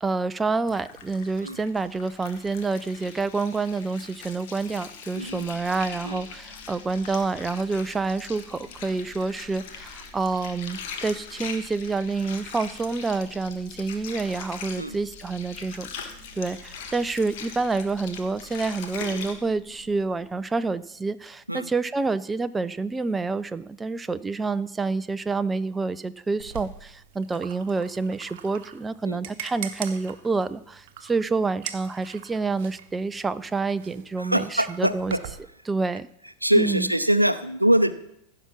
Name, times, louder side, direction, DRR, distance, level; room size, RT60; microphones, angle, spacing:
voice 1, 0.0-35.1 35.7-36.1 36.6-36.9, right 3 dB, 10° right, 14 dB, 0.4 m, -28 dB
Water, 0.7-19.3, left 6 dB, 50° left, 1.4 m, -41 dB
sound 1, 5.1-21.1, equal, 25° left, 4.9 m, -52 dB
voice 2, 5.1-5.5 6.0-6.2 14.8-15.0 21.5-21.7 29.1-29.2 34.2-35.2 36.4-37.9, right 1 dB, 85° right, 13 dB, 0.5 m, -23 dB
sound 2, 26.4-35.4, right 10 dB, 50° right, 1.0 m, -42 dB
15.5 x 5.8 x 6.0 m, 0.78 s
figure-of-eight pair, 90°, 0 cm